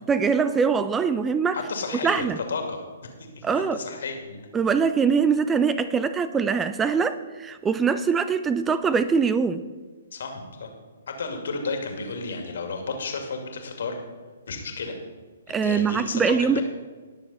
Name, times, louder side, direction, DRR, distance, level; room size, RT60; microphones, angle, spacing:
voice 1, 0.1-1.6 2.0-2.4 3.4-3.8 4.5-9.6 15.5-16.6, right 5 dB, 15° right, 13 dB, 0.4 m, -23 dB
voice 2, 1.5-2.8 3.4-4.5 10.1-10.7 11.1-14.0 14.5-15.0 15.5-16.6, left 4 dB, 60° left, 4 dB, 2.3 m, -32 dB
19.0 x 6.7 x 4.2 m, 1.4 s
figure-of-eight pair, 125°, 0 cm